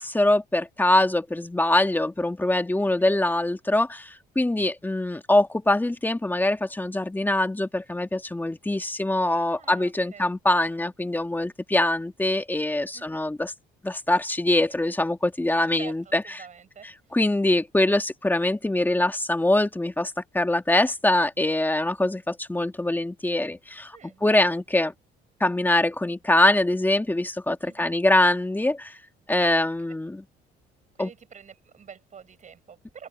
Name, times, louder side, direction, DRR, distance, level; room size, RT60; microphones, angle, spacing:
voice 1, 0.0-13.5 13.8-16.4 17.1-24.9 25.4-29.0 29.3-30.2 31.0-31.1, left 1 dB, 10° left, 2.1 m, -23 dB
voice 2, 2.8-3.2 9.4-10.3 12.9-13.3 15.5-16.9 23.9-24.5 27.6-28.0 31.0-33.1, right 7 dB, 45° right, 7.8 m, -47 dB
open air
cardioid pair, 90°, 18 cm